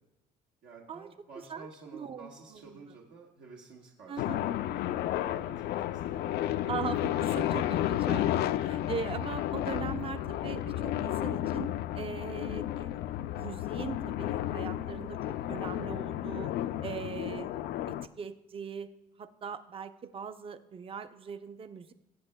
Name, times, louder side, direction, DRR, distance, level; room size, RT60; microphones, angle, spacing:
voice 1, 0.6-5.8 6.2-6.5, right 4 dB, 80° right, -3 dB, 1.4 m, -52 dB
voice 2, 1.5-2.8 4.1-4.4 6.7-11.7 11.9-12.9 13.3-15.2 15.5-16.5 16.8-18.9 19.2-21.9, right 6 dB, 35° right, 11 dB, 0.5 m, -40 dB
sound 1, 4.2-18.1, left 12 dB, 70° left, 0.4 m, -32 dB
18.0 x 7.9 x 2.2 m, 0.97 s
cardioid pair, 110°, 17 cm